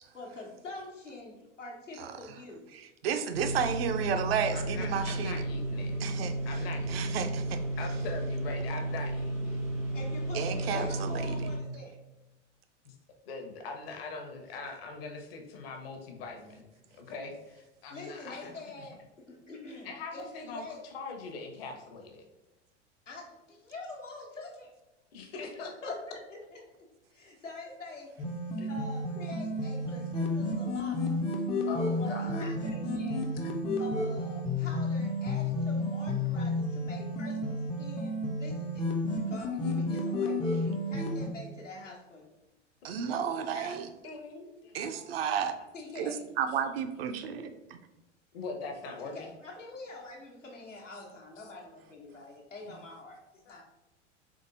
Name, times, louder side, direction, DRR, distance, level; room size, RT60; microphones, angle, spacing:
voice 1, 0.1-2.7 9.9-12.0 17.9-20.8 23.1-24.7 25.3-28.1 28.7-31.2 32.0-33.4 33.8-38.8 39.3-42.3 43.0-43.2 43.5-43.8 45.7-46.3 49.0-53.2 53.5-53.6, left 2 dB, 85° left, -3 dB, 1.1 m, -45 dB
voice 2, 2.7-5.4 6.0-7.6 10.3-11.4 42.8-43.9 44.7-45.6 46.0-47.8, right 7 dB, 55° right, 7 dB, 0.5 m, -32 dB
sound 1, 3.3-11.6, right 1 dB, 85° right, 1.4 m, -33 dB
voice 3, 4.5-5.9 6.5-7.2 7.8-9.6 10.7-10.9 12.9-13.0 13.3-16.6 17.0-18.5 19.8-20.6 20.9-22.2 25.1-25.9 28.6-28.7 31.7-32.5 42.8-43.0 44.0-45.2 48.3-49.3 51.6-51.7 53.5-53.6, left 3 dB, 55° left, 3 dB, 0.8 m, -42 dB
sound 2, 28.2-41.3, left 1 dB, 15° left, 0.4 m, -31 dB
3.6 x 3.6 x 2.6 m, 0.99 s
figure-of-eight pair, 85°, 36 cm